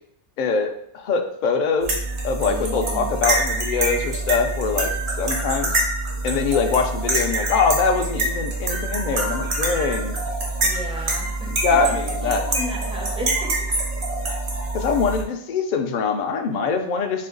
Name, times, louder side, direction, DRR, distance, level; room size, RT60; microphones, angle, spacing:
voice 1, 0.4-2.0 2.2-4.9 5.2-5.7 6.2-10.2 11.5-12.4 14.7-17.3, left 5 dB, 60° left, 4 dB, 0.5 m, -23 dB
sound 1, 1.8-15.2, right 2 dB, 65° right, 1.1 m, -25 dB
voice 2, 2.5-3.1 10.6-11.9 12.2-13.7, equal, 10° right, -2 dB, 0.4 m, -34 dB
4.2 x 2.2 x 3.8 m, 0.71 s
omnidirectional pair, 1.3 m